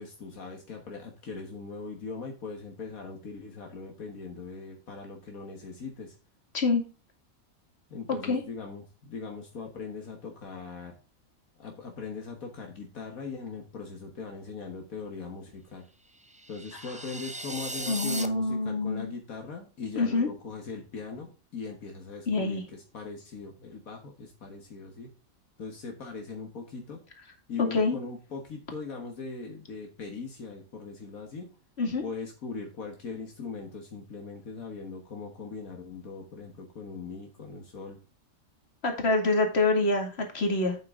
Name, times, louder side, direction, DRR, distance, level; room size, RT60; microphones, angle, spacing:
voice 1, 0.0-6.2 7.9-10.9 11.6-15.9 16.5-25.1 25.6-27.0 27.5-31.5 32.0-38.0, left 4 dB, 75° left, 3 dB, 1.9 m, -40 dB
sound 1, 16.2-18.3, right 1 dB, 10° right, 0.3 m, -37 dB
voice 2, 17.9-19.1 20.0-20.3 22.3-22.6 27.6-28.0 31.8-32.0 38.8-40.8, left 3 dB, 45° left, 3 dB, 2.5 m, -26 dB
8.5 x 7.9 x 3.6 m, 0.34 s
omnidirectional pair, 1.5 m